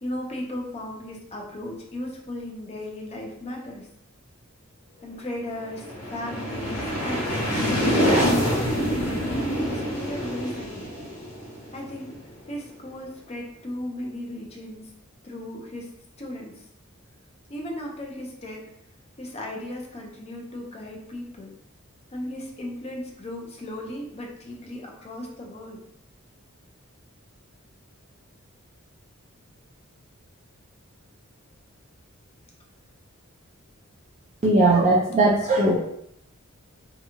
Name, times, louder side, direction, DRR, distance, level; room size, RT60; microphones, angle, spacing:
voice 1, 0.0-3.9 5.0-7.2 7.6-10.8 11.7-12.2 12.5-14.9 15.2-15.9 16.2-16.7 17.5-18.7 19.2-21.5 22.1-25.8, left 1 dB, 30° left, 0 dB, 0.5 m, -36 dB
sound 1, 5.6-12.3, equal, 75° left, 1.1 m, -26 dB
voice 2, 34.4-35.8, right 2 dB, 30° right, -5 dB, 0.4 m, -19 dB
2.8 x 2.2 x 2.7 m, 0.74 s
head